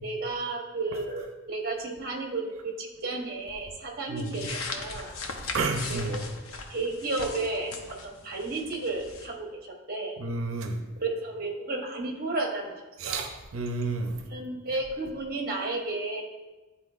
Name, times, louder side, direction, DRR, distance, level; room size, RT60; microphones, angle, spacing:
voice 1, 0.0-5.1 5.9-6.3 6.7-10.2 11.0-12.7 13.0-13.3 14.3-16.2, right 2 dB, 45° right, 1 dB, 1.1 m, -33 dB
sound 1, 4.2-9.3, left 3 dB, 80° left, 0.7 m, -39 dB
voice 2, 5.5-6.2 10.2-10.8 13.0-14.2, right 3 dB, 70° right, 5 dB, 0.6 m, -30 dB
10.0 x 4.2 x 2.4 m, 1.2 s
head